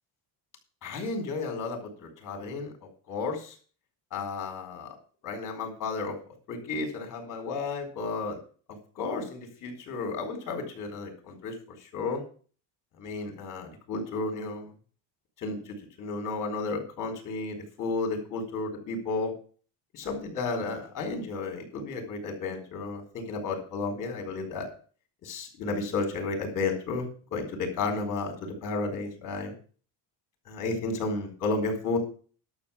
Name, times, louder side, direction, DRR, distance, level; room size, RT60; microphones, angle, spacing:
voice 1, 0.8-2.7 3.1-3.5 4.1-4.9 5.2-6.2 6.5-8.4 9.0-12.2 13.0-14.7 15.4-19.3 19.9-24.7 25.2-29.5 30.5-32.0, left 3 dB, 45° left, 4 dB, 4.3 m, -33 dB
12.0 x 6.7 x 7.2 m, 0.40 s
cardioid pair, 165°, 43 cm